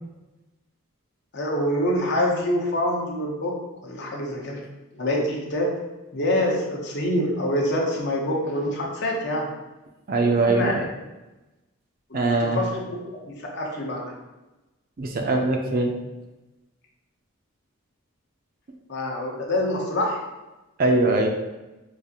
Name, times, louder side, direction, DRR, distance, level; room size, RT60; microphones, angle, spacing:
voice 1, 1.3-4.6 4.9-5.8 6.1-9.5 10.4-10.7 12.1-13.0 13.2-14.1 18.9-20.2, left 1 dB, 50° left, -1 dB, 0.7 m, -26 dB
voice 2, 10.1-10.9 12.1-12.6 15.0-15.9 20.8-21.3, right 2 dB, 40° right, 3 dB, 0.4 m, -21 dB
4.8 x 2.4 x 2.8 m, 1.1 s
head